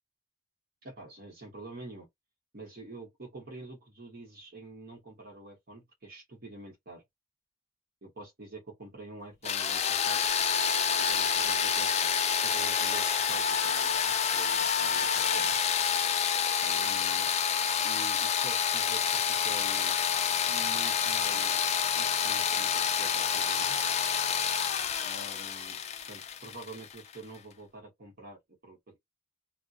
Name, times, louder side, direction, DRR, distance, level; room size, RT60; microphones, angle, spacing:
voice 1, 0.8-2.1 2.5-7.0 8.0-10.3 11.0-12.1 12.4-15.6 16.6-17.3 17.8-20.0 20.5-21.6 22.0-23.8 25.0-25.8 26.1-29.0, right 2 dB, 55° right, 0.8 m, -47 dB
sound 1, 9.4-27.2, left 7 dB, 35° left, 0.3 m, -28 dB
2.3 x 2.0 x 2.6 m
head